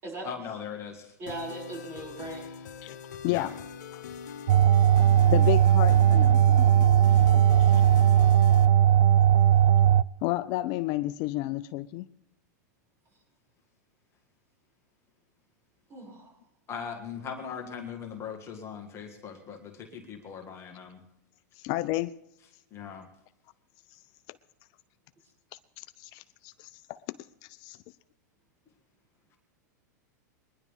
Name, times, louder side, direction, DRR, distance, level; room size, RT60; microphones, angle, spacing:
voice 1, 0.2-1.2 3.3-3.5 7.1-7.8 16.7-21.0 22.7-23.1, left 7 dB, 30° left, 3 dB, 1.8 m, -40 dB
voice 2, 1.2-2.6 15.9-16.3, right 2 dB, 30° right, -2 dB, 6.6 m, -39 dB
sound 1, 1.3-8.7, left 7 dB, 80° left, 1.1 m, -42 dB
voice 3, 3.2-3.5 3.9-4.0 5.3-6.9 7.2-7.8 10.2-12.1 21.6-22.1 23.9-24.0 24.3-24.4 25.8-27.2 27.4-27.8, left 18 dB, 45° left, 14 dB, 0.4 m, -32 dB
sound 2, 4.5-10.0, right 10 dB, 70° right, 0.4 m, -19 dB
22.5 x 10.5 x 3.6 m, 0.80 s
hypercardioid pair, 125°, 10 cm